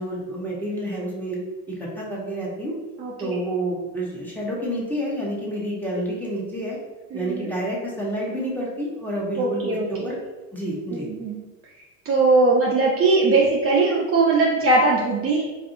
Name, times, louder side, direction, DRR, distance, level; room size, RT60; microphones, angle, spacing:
voice 1, 0.0-1.4 1.8-2.7 3.2-6.8 7.1-10.2 10.5-11.1, right 1 dB, 5° left, -5 dB, 1.0 m, -29 dB
voice 2, 3.0-3.4 7.1-7.5 9.4-10.1 10.9-11.4 12.0-15.4, right 3 dB, 30° right, -3 dB, 0.6 m, -20 dB
4.0 x 2.6 x 2.6 m, 1.2 s
supercardioid pair, 100°, 43 cm